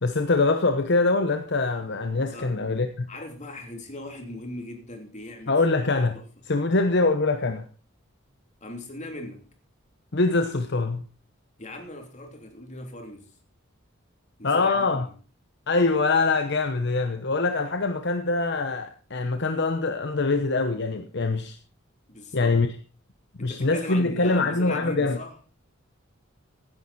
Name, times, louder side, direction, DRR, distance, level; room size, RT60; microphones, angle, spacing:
voice 1, 0.0-3.1 5.5-6.2 6.5-7.6 10.1-11.1 14.4-15.1 15.7-21.6 22.3-22.7 23.3-25.2, left 3 dB, 60° left, 1.0 m, -24 dB
voice 2, 3.1-5.6 6.1-6.3 8.6-9.5 11.6-13.3 14.4-15.1 22.1-22.6 23.4-25.4, left 1 dB, 40° left, 3.1 m, -39 dB
16.0 x 10.0 x 4.2 m
head